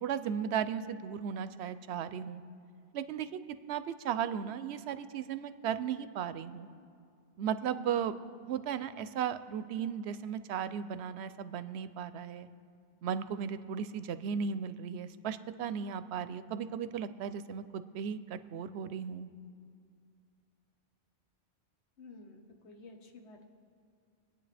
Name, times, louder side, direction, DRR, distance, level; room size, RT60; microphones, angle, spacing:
voice 1, 0.0-2.4 2.9-3.3 3.7-6.7 7.4-8.1 8.4-12.5 13.0-19.3, right 8 dB, 80° right, 13 dB, 0.8 m, -36 dB
voice 2, 22.0-23.4, left 3 dB, 90° left, 3 dB, 1.4 m, -52 dB
24.5 x 9.0 x 3.4 m, 2.3 s
omnidirectional pair, 1.1 m